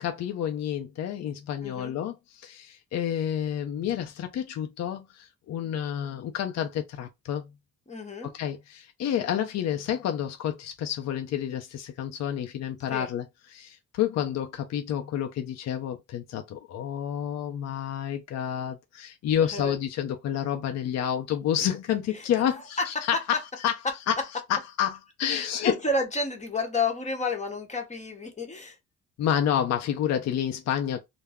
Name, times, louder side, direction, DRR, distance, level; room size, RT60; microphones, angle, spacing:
voice 1, 0.0-7.5 8.3-23.2 23.6-23.7 24.1-24.2 24.5-25.7 29.2-31.0, left 10 dB, 60° left, 0.5 m, -29 dB
voice 2, 1.6-1.9 7.9-8.3 12.9-13.1 19.5-19.8 22.1-22.5 22.9-23.1 25.2-28.8, left 3 dB, 25° left, 0.8 m, -31 dB
2.2 x 2.0 x 3.4 m
cardioid pair, 90°, 30 cm